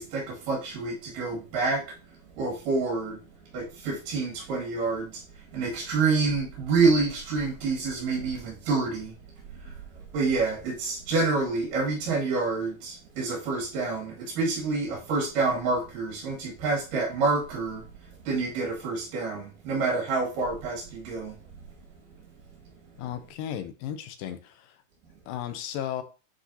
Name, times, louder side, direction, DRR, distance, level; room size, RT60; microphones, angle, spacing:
voice 1, 0.0-1.9 2.4-3.2 3.5-5.2 5.5-9.1 9.5-9.8 10.1-17.9 18.3-21.4, right 4 dB, 75° right, 3.5 m, -27 dB
voice 2, 23.0-24.8 25.3-26.0, left 10 dB, 85° left, 2.4 m, -35 dB
10.0 x 3.9 x 2.7 m
omnidirectional pair, 3.9 m